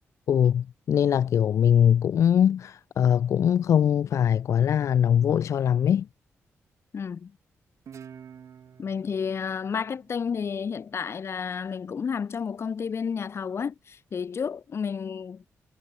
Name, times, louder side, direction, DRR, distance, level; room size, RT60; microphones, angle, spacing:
voice 1, 0.3-6.1, left 9 dB, 70° left, 0.5 m, -22 dB
voice 2, 6.9-7.3 8.8-15.5, left 6 dB, 55° left, 2.1 m, -31 dB
Guitar, 7.9-11.1, right 8 dB, 65° right, 5.1 m, -49 dB
cardioid pair, 90°, 5 cm